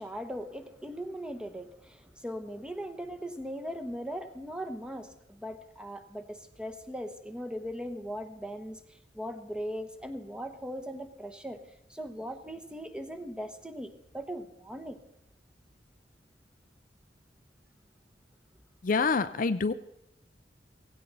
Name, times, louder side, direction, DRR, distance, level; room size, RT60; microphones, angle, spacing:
voice 1, 0.0-8.8 9.1-11.6 11.9-15.0, equal, 5° right, 8 dB, 1.1 m, -39 dB
voice 2, 18.8-19.7, left 4 dB, 50° left, 11 dB, 0.5 m, -26 dB
17.5 x 16.0 x 4.0 m, 0.82 s
head